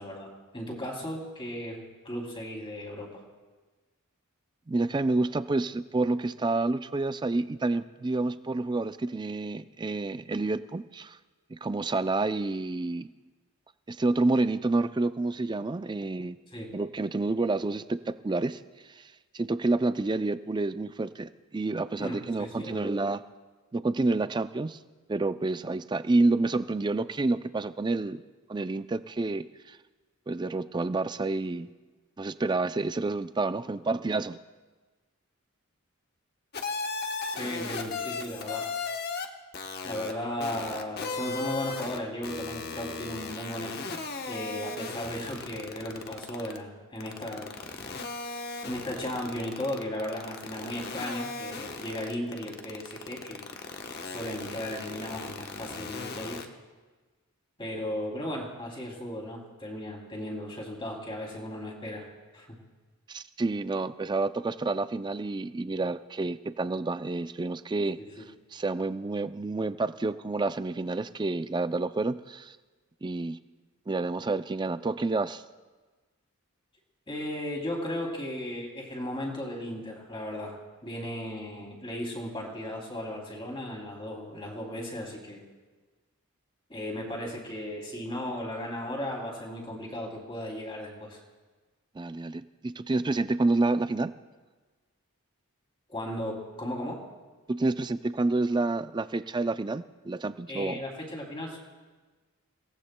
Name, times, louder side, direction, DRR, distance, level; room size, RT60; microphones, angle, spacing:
voice 1, 0.0-3.2 16.5-16.8 22.0-22.9 37.3-38.7 39.8-44.0 44.3-47.6 48.6-53.5 53.9-56.5 57.6-62.1 62.3-62.6 68.0-68.2 77.1-85.4 86.7-91.2 95.9-97.0 100.5-101.6, left 1 dB, 25° left, -1 dB, 2.9 m, -36 dB
voice 2, 4.7-11.2 11.5-13.1 13.9-16.4 16.7-18.6 18.9-23.2 23.7-24.8 25.1-28.2 28.5-29.8 30.3-31.7 32.2-34.4 63.1-68.0 68.5-72.6 73.0-73.4 73.9-75.4 92.0-94.1 97.5-100.8, right 2 dB, 20° right, 12 dB, 0.3 m, -29 dB
sound 1, 36.5-39.2 39.5-40.1 40.4-42.0 42.2-46.6 47.0-56.4, left 4 dB, 45° left, 1.0 m, -36 dB
29.0 x 18.0 x 2.2 m, 1.3 s
head